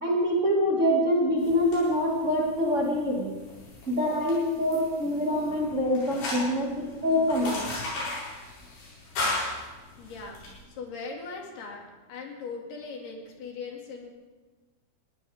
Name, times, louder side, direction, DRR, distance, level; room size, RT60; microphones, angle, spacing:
voice 1, 0.0-3.3 3.9-7.6, equal, 70° right, -3 dB, 0.7 m, -25 dB
sound 1, 1.4-10.5, left 2 dB, 90° left, 9.9 m, -37 dB
voice 2, 10.0-10.4 10.7-11.8 12.1-14.1, left 4 dB, 60° left, 0 dB, 4.0 m, -39 dB
21.0 x 18.0 x 3.6 m, 1.3 s
omnidirectional pair, 5.6 m